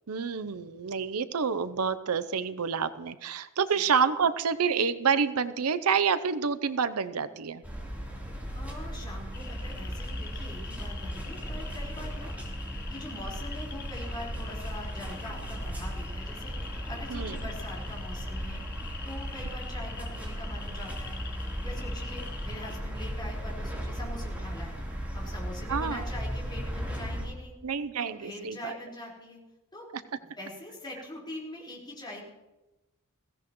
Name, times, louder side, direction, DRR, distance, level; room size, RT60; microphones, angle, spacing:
voice 1, 0.1-7.6 17.1-17.4 25.7-26.0 27.6-28.8 29.9-30.0, right 6 dB, 85° right, 13 dB, 0.7 m, -28 dB
sound 1, 7.6-27.2, equal, 5° right, 3.5 m, -36 dB
voice 2, 8.5-12.3 12.9-18.6 19.0-21.2 21.4-27.5 28.0-29.4 29.7-29.9 30.4-32.2, left 1 dB, 20° left, -4 dB, 4.5 m, -43 dB
sound 2, 9.3-22.8, left 6 dB, 45° left, 1.3 m, -46 dB
21.5 x 16.0 x 3.1 m, 1.0 s
head